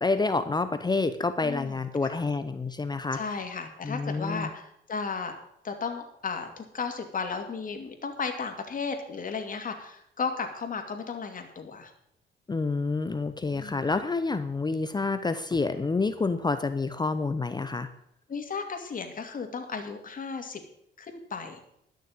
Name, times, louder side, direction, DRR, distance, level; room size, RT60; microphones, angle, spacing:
voice 1, 0.0-3.2 3.8-4.5 12.5-17.9, left 3 dB, 20° left, 11 dB, 0.7 m, -28 dB
voice 2, 1.4-2.2 3.1-5.3 5.6-11.9 13.5-13.9 18.3-20.6 21.0-21.6, left 5 dB, 45° left, 5 dB, 2.5 m, -35 dB
12.5 x 6.5 x 8.8 m, 0.75 s
cardioid pair, 90°, 20 cm